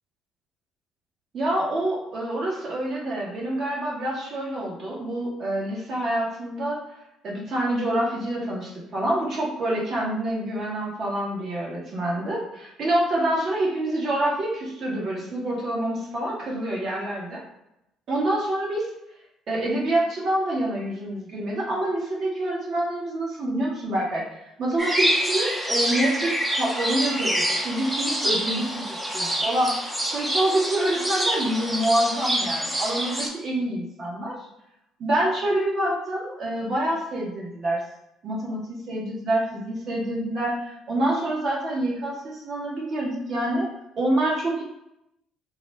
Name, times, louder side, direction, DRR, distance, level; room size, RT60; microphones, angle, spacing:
voice 1, 1.3-6.8 7.2-17.4 18.1-18.9 19.5-24.2 24.6-34.3 35.0-37.8 38.2-43.7 44.0-44.6, right 1 dB, 50° right, -4 dB, 1.0 m, -26 dB
sound 1, 24.8-33.3, right 1 dB, 10° right, 0.6 m, -26 dB
2.3 x 2.1 x 3.2 m, 0.85 s
figure-of-eight pair, 50°, 0 cm